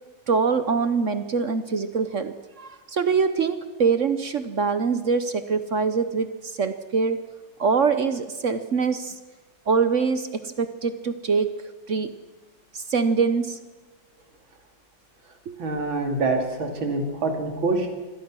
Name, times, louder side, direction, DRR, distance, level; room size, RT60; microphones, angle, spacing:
voice 1, 0.3-7.2 7.6-9.1 9.7-11.5 11.9-12.1 12.7-13.6 15.5-15.6, right 5 dB, 50° right, 11 dB, 1.0 m, -24 dB
voice 2, 15.6-17.9, right 3 dB, 80° right, 3 dB, 3.6 m, -25 dB
24.5 x 17.0 x 6.2 m, 1.3 s
omnidirectional pair, 2.1 m